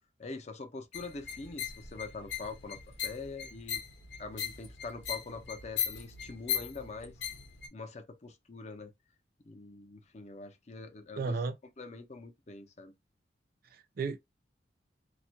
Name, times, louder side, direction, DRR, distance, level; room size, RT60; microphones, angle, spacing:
voice 1, 0.2-3.8 4.2-7.1 7.7-8.9 9.4-11.3 11.8-12.9, left 3 dB, 40° left, 0.5 m, -44 dB
sound 1, 0.9-7.7, left 8 dB, 90° left, 0.7 m, -38 dB
voice 2, 11.2-11.6 13.7-14.2, right 4 dB, 55° right, 0.4 m, -34 dB
2.3 x 2.1 x 2.7 m
head